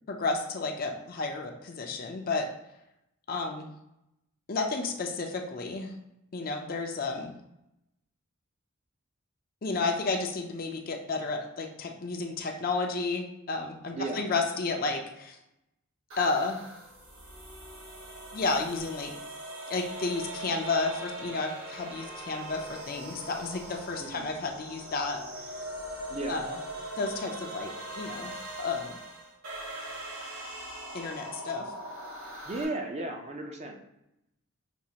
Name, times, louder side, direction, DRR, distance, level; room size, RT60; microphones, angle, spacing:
voice 1, 0.1-2.5 3.3-3.7 4.5-5.9 6.3-7.3 9.6-15.4 16.2-16.6 18.3-19.1 19.7-25.2 26.3-26.6 27.0-28.3 28.6-29.0 30.9-31.7, left 3 dB, 40° left, 3 dB, 0.4 m, -32 dB
voice 2, 13.9-14.2 24.0-24.3 26.1-26.4 32.5-33.8, right 2 dB, 30° right, 3 dB, 0.4 m, -35 dB
sound 1, 16.1-32.6, right 1 dB, 80° right, 1.1 m, -41 dB
6.0 x 2.4 x 2.8 m, 0.85 s
head